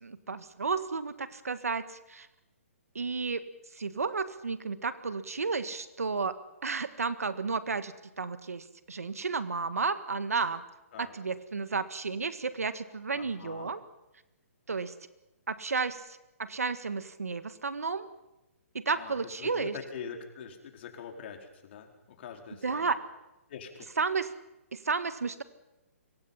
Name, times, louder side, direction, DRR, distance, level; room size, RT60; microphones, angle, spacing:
voice 1, 0.0-2.3 3.0-3.5 3.8-6.4 6.6-10.6 11.0-13.8 14.7-14.9 15.5-18.1 18.7-19.7 22.6-23.0 24.0-24.3 24.7-25.4, right 4 dB, 85° right, 12 dB, 1.7 m, -32 dB
voice 2, 13.1-13.7 18.9-21.9 22.2-22.9 23.5-23.9, left 7 dB, 50° left, 3 dB, 4.5 m, -44 dB
26.5 x 23.5 x 5.8 m, 0.96 s
hypercardioid pair, 140°, 8 cm